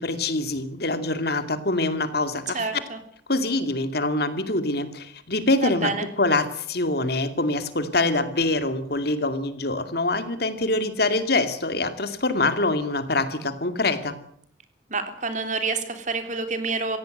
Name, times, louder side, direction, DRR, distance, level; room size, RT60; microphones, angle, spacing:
voice 1, 0.0-2.7 3.3-5.9 6.2-14.2, left 2 dB, 55° left, 9 dB, 2.4 m, -25 dB
voice 2, 2.5-3.0 5.6-6.1 14.9-17.0, right 4 dB, 40° right, 7 dB, 3.3 m, -28 dB
25.0 x 16.5 x 7.9 m, 0.64 s
head